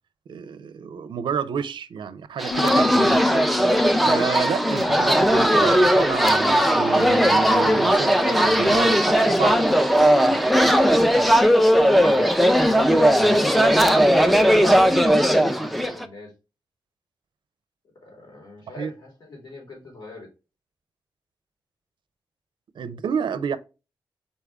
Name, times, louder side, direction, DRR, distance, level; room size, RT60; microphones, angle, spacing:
voice 1, 0.3-3.2 4.1-9.6 18.8-18.9 22.8-23.6, right 7 dB, 85° right, 0.4 m, -29 dB
sound 1, 2.4-16.1, equal, ahead, 0.5 m, -18 dB
Bass guitar, 2.5-8.8, left 4 dB, 80° left, 0.4 m, -34 dB
voice 2, 12.0-13.8 14.1-16.3 18.0-20.3, left 2 dB, 65° left, 2.9 m, -39 dB
4.1 x 3.5 x 3.4 m
wide cardioid pair, 95°, 8 cm